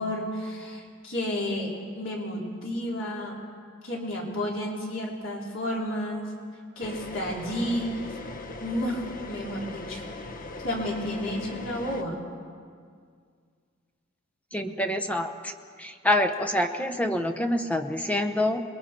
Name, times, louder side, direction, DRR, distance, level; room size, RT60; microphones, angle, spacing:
voice 1, 0.0-3.4 3.8-6.3 6.8-8.2 8.6-10.0 10.6-12.2, left 1 dB, 75° left, -3 dB, 3.8 m, -31 dB
sound 1, 6.8-12.0, left 2 dB, 45° left, 0.9 m, -39 dB
voice 2, 14.5-15.5 15.8-18.6, left 1 dB, 5° left, 6 dB, 0.9 m, -26 dB
28.0 x 21.5 x 4.5 m, 2.1 s
head